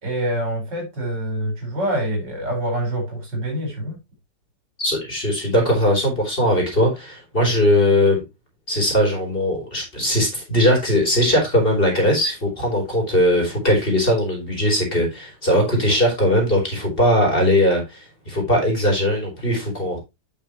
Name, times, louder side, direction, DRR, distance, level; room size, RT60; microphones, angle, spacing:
voice 1, 0.0-4.0, right 1 dB, 75° right, 1 dB, 5.3 m, -26 dB
voice 2, 4.8-8.2 8.7-20.0, left 1 dB, 30° left, 0 dB, 3.6 m, -19 dB
9.1 x 6.4 x 3.0 m, 0.23 s
omnidirectional pair, 1.9 m